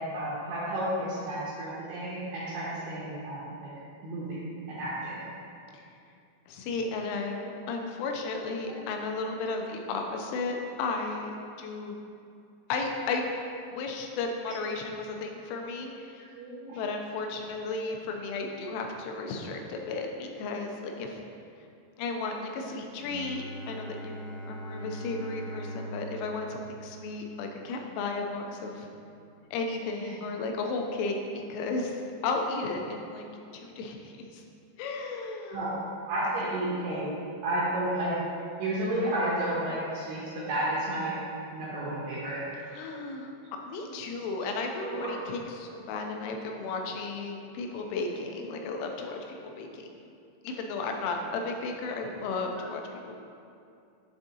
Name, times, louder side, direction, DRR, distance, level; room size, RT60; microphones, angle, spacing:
voice 1, 0.0-3.5 4.0-5.2 8.7-8.8 16.4-16.8 17.5-17.6 30.0-30.1 35.5-35.7 36.1-37.0 37.4-38.2 38.6-40.2 40.5-41.1 41.5-42.4 43.8-43.9 44.8-45.1, right 1 dB, 80° right, -8 dB, 2.4 m, -31 dB
voice 2, 6.5-12.0 12.7-13.2 13.7-16.3 16.7-21.2 22.0-28.9 29.5-33.3 33.5-34.4 34.8-35.7 42.7-43.3 43.7-49.9 50.4-53.2, left 3 dB, 85° left, 3 dB, 3.0 m, -34 dB
Bowed string instrument, 23.0-28.7, right 1 dB, 70° left, 2.1 m, -42 dB
10.0 x 3.6 x 2.7 m, 2.5 s
omnidirectional pair, 5.4 m